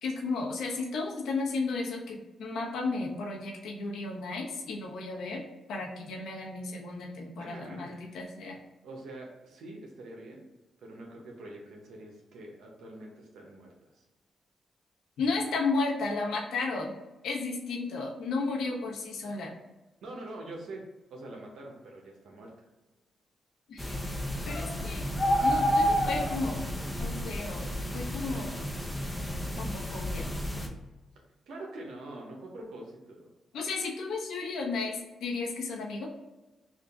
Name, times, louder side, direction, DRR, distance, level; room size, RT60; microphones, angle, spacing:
voice 1, 0.0-5.4 5.7-8.6 15.2-16.9 17.2-19.5 23.7-24.0 24.5-25.1 25.4-26.7 27.0-28.6 29.6-30.3 33.5-36.1, left 3 dB, 85° left, -2 dB, 1.0 m, -33 dB
voice 2, 7.4-8.1 8.8-10.4 10.8-13.7 13.9-14.0 20.0-20.8 21.1-22.7 31.5-33.3, right 2 dB, 85° right, -1 dB, 0.9 m, -44 dB
sound 1, 23.8-30.7, equal, 15° left, 0.7 m, -30 dB
3.7 x 2.5 x 3.5 m, 1.1 s
cardioid pair, 75°, 0 cm